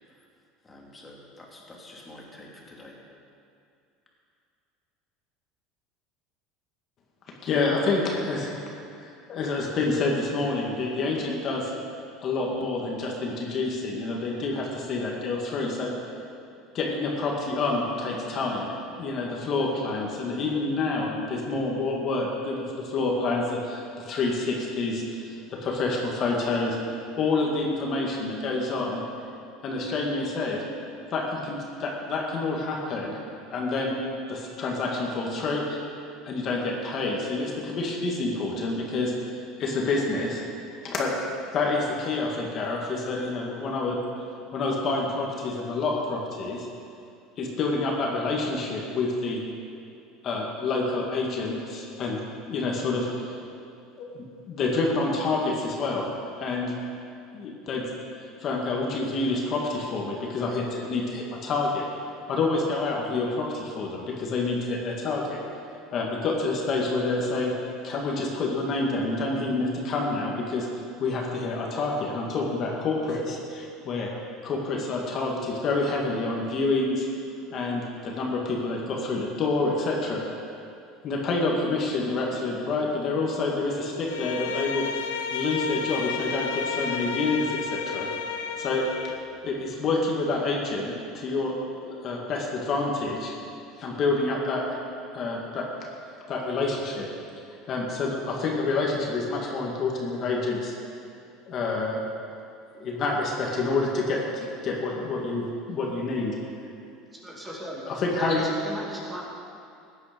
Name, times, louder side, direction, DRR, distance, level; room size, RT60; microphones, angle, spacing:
voice 1, 0.6-2.9, left 1 dB, 15° left, -2 dB, 2.7 m, -47 dB
voice 2, 7.4-8.6 9.0-11.7 12.2-15.9 16.7-18.7 19.0-26.8 27.2-29.0 29.6-30.6 31.1-33.2 33.5-34.0 34.3-35.8 36.2-41.1 41.5-44.0 44.5-46.7 47.4-49.4 50.2-53.4 54.0-56.1 56.4-56.7 57.3-57.8 58.4-61.8 62.3-65.4 65.9-67.5 67.8-70.7 71.0-74.1 74.4-77.1 77.5-80.2 81.0-84.8 85.3-88.1 88.6-93.3 93.8-94.8 95.1-95.7 96.3-97.1 97.5-100.7 101.5-102.0 102.8-106.4 107.9-108.4, left 3 dB, 45° left, -1 dB, 2.1 m, -28 dB
Bowed string instrument, 84.1-89.3, left 6 dB, 90° left, 0.8 m, -32 dB
voice 3, 107.2-109.2, right 1 dB, 15° right, -3 dB, 2.3 m, -37 dB
15.0 x 9.6 x 5.3 m, 2.5 s
supercardioid pair, 120°, 0 cm